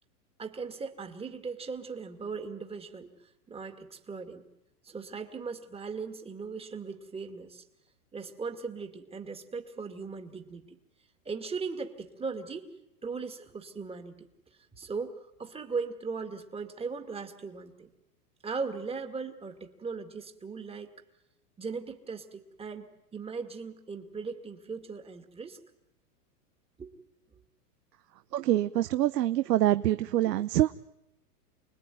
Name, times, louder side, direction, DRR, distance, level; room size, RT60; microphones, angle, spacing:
voice 1, 0.4-3.1 3.5-4.5 4.8-7.6 8.1-10.8 11.3-12.7 13.0-14.3 14.8-17.9 18.4-20.9 21.6-25.6 26.8-26.9 27.3-27.4, right 4 dB, 10° right, 7 dB, 2.3 m, -38 dB
voice 2, 28.3-30.7, right 13 dB, 80° right, 12 dB, 0.9 m, -25 dB
29.5 x 20.0 x 9.4 m, 0.88 s
hypercardioid pair, 130°, 48 cm